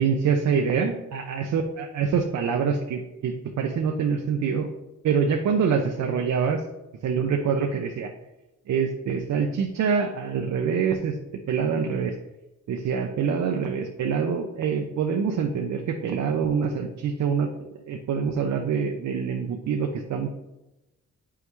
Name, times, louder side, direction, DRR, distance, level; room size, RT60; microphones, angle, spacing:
voice 1, 0.0-4.7 5.0-6.6 7.0-8.1 8.7-11.2 11.5-12.1 12.7-20.3, right 6 dB, 65° right, 3 dB, 0.8 m, -25 dB
7.9 x 5.7 x 3.2 m, 0.97 s
cardioid pair, 90°, 30 cm